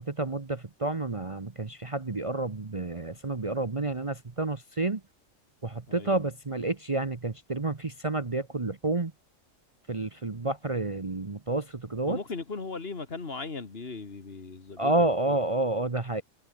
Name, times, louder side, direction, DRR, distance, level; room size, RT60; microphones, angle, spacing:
voice 1, 0.1-5.0 5.6-9.1 9.9-12.2 14.8-16.2, right 2 dB, 25° right, 1.0 m, -30 dB
voice 2, 5.9-6.3 12.1-15.4, left 4 dB, 50° left, 2.1 m, -38 dB
omnidirectional pair, 1.4 m